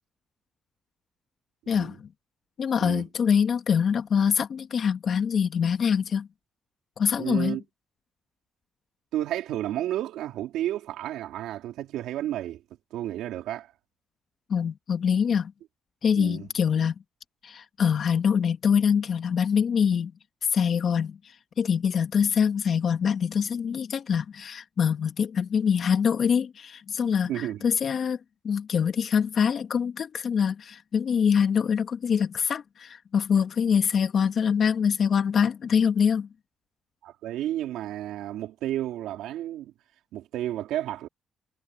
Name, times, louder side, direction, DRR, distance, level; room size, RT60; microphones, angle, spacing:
voice 1, 1.7-2.1 2.6-6.3 7.0-7.6 14.5-15.5 16.0-16.9 17.4-20.1 20.5-28.2 28.4-36.3, left 7 dB, 55° left, 2.1 m, -24 dB
voice 2, 7.2-7.6 9.1-12.6 12.9-13.7 16.2-16.4 27.3-27.6 37.0-39.7 40.1-41.1, right 13 dB, 90° right, 3.6 m, -32 dB
cardioid pair, 90°, 0 cm